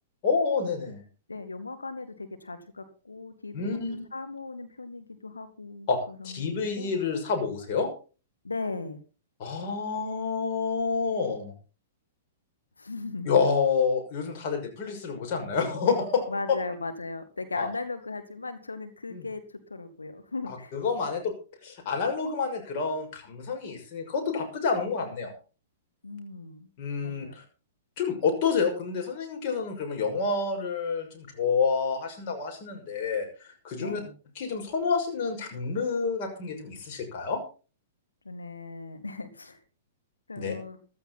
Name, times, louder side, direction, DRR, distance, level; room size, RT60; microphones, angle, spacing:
voice 1, 0.2-1.0 3.5-4.1 5.9-6.0 6.2-7.9 9.4-11.5 13.3-16.3 17.6-17.7 19.1-19.2 20.5-21.3 21.6-25.3 26.8-27.4 28.0-34.0 34.4-37.4 40.4-40.5, left 5 dB, 45° left, 4 dB, 6.0 m, -28 dB
voice 2, 1.3-6.9 8.4-9.0 12.8-13.3 16.3-20.7 26.0-26.7 27.0-27.4 33.8-34.1 38.2-39.6 40.3-40.8, left 3 dB, 90° left, 9 dB, 2.5 m, -38 dB
15.5 x 12.5 x 4.2 m, 0.36 s
figure-of-eight pair, 110°, 0 cm